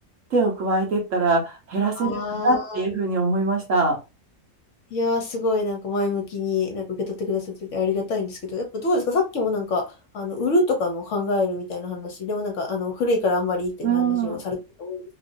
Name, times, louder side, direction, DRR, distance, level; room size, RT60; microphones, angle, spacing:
voice 1, 0.3-4.0 13.8-14.4, right 3 dB, 60° right, 1 dB, 1.2 m, -23 dB
voice 2, 2.0-2.8 4.9-15.0, left 3 dB, 60° left, 3 dB, 1.0 m, -26 dB
3.0 x 2.6 x 2.6 m, 0.27 s
omnidirectional pair, 1.6 m